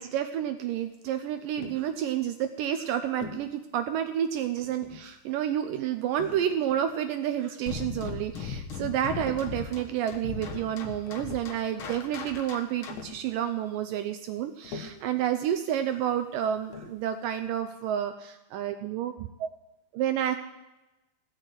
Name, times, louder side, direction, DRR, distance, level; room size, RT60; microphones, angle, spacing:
voice 1, 0.0-19.5 19.9-20.4, right 10 dB, 80° right, 8 dB, 2.0 m, -30 dB
Tap, 1.6-1.9 3.2-3.5 4.6-5.1 6.2-7.0 8.0-8.3 9.0-9.5 10.7-10.8 11.0-11.6 12.9-13.3 14.6-15.1 16.7-17.1, left 5 dB, 65° left, 1.9 m, -43 dB
sound 1, 7.7-13.2, left 5 dB, 80° left, 1.1 m, -38 dB
16.5 x 6.4 x 9.1 m, 1.0 s
omnidirectional pair, 4.6 m